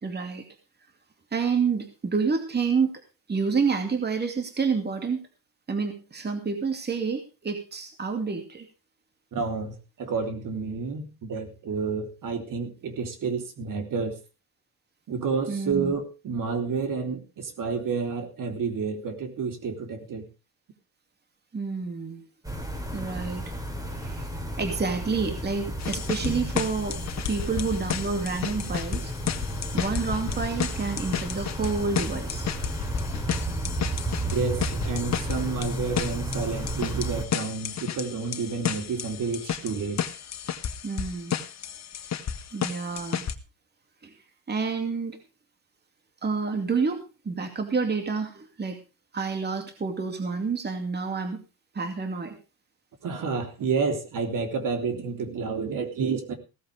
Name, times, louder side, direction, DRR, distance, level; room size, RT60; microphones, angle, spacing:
voice 1, 0.0-0.4 1.3-2.9 3.3-5.2 5.7-8.7 15.5-15.9 21.5-22.2 22.9-23.4 23.9-24.3 24.6-27.0 27.3-29.1 29.7-32.5 40.8-41.4 42.5-43.2 44.0-44.2 44.5-45.2 46.2-48.8 49.1-51.4 51.7-52.4, right 5 dB, 25° right, 6 dB, 2.5 m, -28 dB
voice 2, 9.3-14.2 15.1-20.3 34.3-40.0 53.0-56.3, right 5 dB, 55° right, 6 dB, 3.5 m, -30 dB
sound 1, 22.4-37.2, right 1 dB, 10° right, 3.8 m, -33 dB
sound 2, 25.8-43.3, left 8 dB, 45° left, 1.6 m, -33 dB
16.5 x 14.0 x 3.4 m, 0.31 s
cardioid pair, 125°, 38 cm